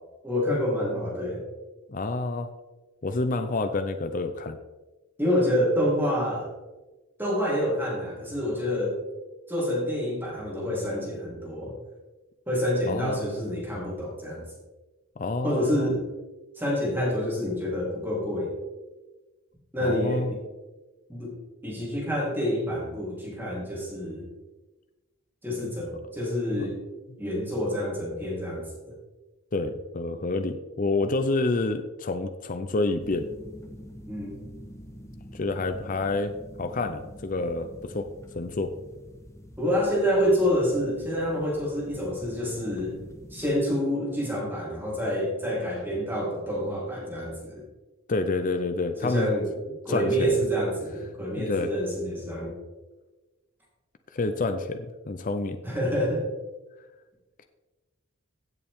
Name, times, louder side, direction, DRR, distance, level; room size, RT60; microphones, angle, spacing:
voice 1, 0.2-1.4 5.2-6.5 7.2-9.0 9.5-11.7 12.5-14.4 15.4-16.0 16.6-18.5 19.7-20.4 21.1-21.3 21.6-24.3 25.4-26.8 27.2-28.6 34.1-34.4 39.6-43.0 43.3-47.6 49.0-49.5 49.8-52.5 55.6-56.2, equal, 10° right, -5 dB, 3.5 m, -27 dB
voice 2, 1.9-2.5 3.0-4.6 12.9-13.2 15.2-16.0 19.8-20.3 26.6-26.7 29.5-33.3 35.3-36.3 36.6-38.1 38.4-38.7 48.1-49.3 49.9-50.3 51.4-51.7 54.1-55.6, left 3 dB, 40° left, 7 dB, 0.6 m, -28 dB
sound 1, 33.0-43.7, equal, 15° left, 1.0 m, -46 dB
16.0 x 7.1 x 3.6 m, 1.2 s
head